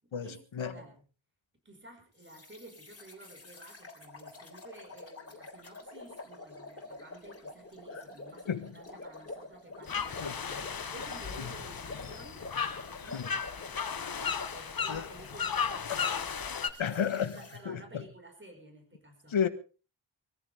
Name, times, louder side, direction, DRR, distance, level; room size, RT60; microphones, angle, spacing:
voice 1, 0.0-1.0 1.7-13.9 14.5-17.0 17.3-19.4, right 2 dB, 25° right, 5.2 m, -53 dB
sound 1, 2.2-17.6, left 2 dB, 30° left, 3.5 m, -48 dB
sound 2, 9.9-16.7, left 6 dB, 50° left, 1.1 m, -35 dB
voice 2, 16.8-17.4 17.6-18.0 19.3-19.5, left 7 dB, 80° left, 1.6 m, -31 dB
23.0 x 14.5 x 3.5 m
wide cardioid pair, 115°, 47 cm